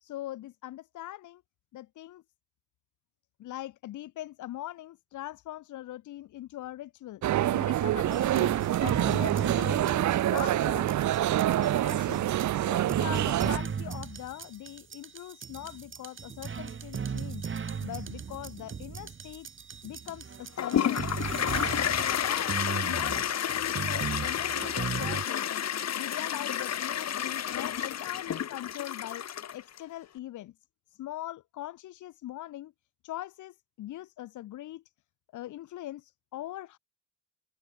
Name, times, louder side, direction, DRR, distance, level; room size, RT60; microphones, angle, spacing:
voice 1, 0.0-1.4 1.7-2.2 3.4-7.2 7.5-8.5 8.8-10.9 11.3-12.3 12.6-17.5 17.8-19.5 19.8-21.0 21.4-22.6 22.9-25.6 25.9-30.5 31.0-32.7 33.0-34.8 35.3-36.8, left 14 dB, 75° left, 1.3 m, -41 dB
sound 1, 7.2-13.6, right 13 dB, 70° right, 1.5 m, -26 dB
sound 2, 8.1-25.2, right 6 dB, 40° right, 4.3 m, -37 dB
Toilet flush, 20.6-29.8, left 9 dB, 60° left, 3.0 m, -30 dB
cardioid pair, 90°, 30 cm